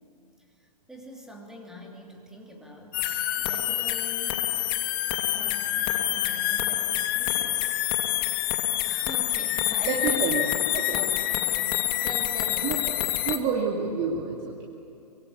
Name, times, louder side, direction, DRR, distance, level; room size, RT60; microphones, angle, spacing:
voice 1, 0.6-4.5 5.3-7.8 8.2-8.4 8.8-10.5 10.9-12.9, equal, 5° right, 1 dB, 2.9 m, -43 dB
sound 1, 2.9-13.4, left 14 dB, 35° left, 1.2 m, -27 dB
voice 2, 9.8-10.4 10.7-11.0 12.6-12.9 13.2-14.5, right 5 dB, 25° right, -2 dB, 2.5 m, -28 dB
24.5 x 22.5 x 8.7 m, 2.7 s
figure-of-eight pair, 120°, 21 cm